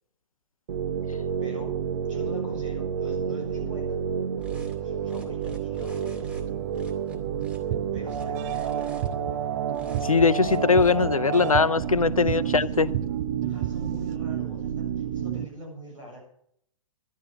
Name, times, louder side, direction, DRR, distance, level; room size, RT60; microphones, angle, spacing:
sound 1, 0.7-15.5, right 8 dB, 50° right, 1.0 m, -30 dB
voice 1, 1.4-1.7 2.0-4.0 4.7-6.4 7.9-9.0 12.2-12.8 13.4-16.2, right 1 dB, 70° right, 7.4 m, -43 dB
sound 2, 4.4-4.7 5.0-6.4 6.7-7.6 8.0-9.1 9.7-10.1 10.4-10.9, right 2 dB, 5° right, 2.2 m, -45 dB
sound 3, 6.3-8.7 9.0-14.2, right 13 dB, 30° right, 0.4 m, -36 dB
voice 2, 10.0-12.9, left 4 dB, 80° left, 0.7 m, -21 dB
12.5 x 11.5 x 6.3 m
figure-of-eight pair, 115°, 18 cm